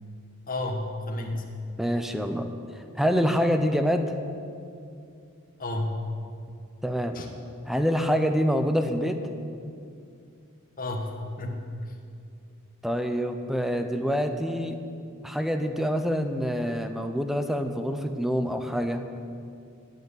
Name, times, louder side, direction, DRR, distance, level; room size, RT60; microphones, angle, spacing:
voice 1, 0.5-1.5 5.6-6.0 7.1-7.3 10.8-11.9, left 1 dB, 40° left, 2 dB, 1.8 m, -32 dB
voice 2, 1.8-2.5 3.0-4.1 6.8-7.2 7.7-9.2 12.8-14.8 15.2-19.0, equal, ahead, 7 dB, 0.8 m, -26 dB
12.5 x 8.2 x 9.5 m, 2.4 s
head